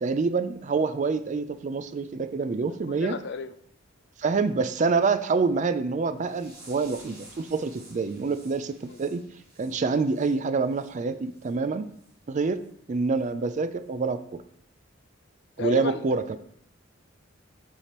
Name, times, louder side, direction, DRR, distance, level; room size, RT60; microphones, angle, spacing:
voice 1, 0.0-3.2 4.2-9.2 9.6-11.8 12.3-12.6 12.9-14.2 15.6-16.4, right 4 dB, 35° right, 12 dB, 0.4 m, -26 dB
voice 2, 2.9-3.5 8.9-9.0 15.6-16.0, left 6 dB, 55° left, 12 dB, 0.4 m, -33 dB
sound 1, 6.2-10.9 11.3-11.5 12.0-12.1 12.6-12.7 13.2-13.3, right 2 dB, 15° right, 2.5 m, -52 dB
7.0 x 6.6 x 3.0 m, 0.68 s
head